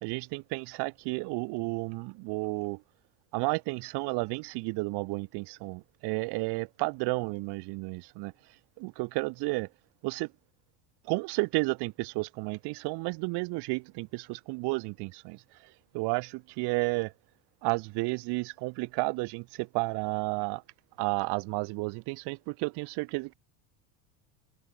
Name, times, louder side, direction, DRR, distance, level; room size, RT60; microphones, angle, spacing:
voice 1, 0.0-2.8 3.3-8.3 8.8-9.7 10.0-10.3 11.1-15.4 15.9-17.1 17.6-20.6 21.0-23.3, right 26 dB, 55° right, 1.1 m, -32 dB
supercardioid pair, 130°, 48 cm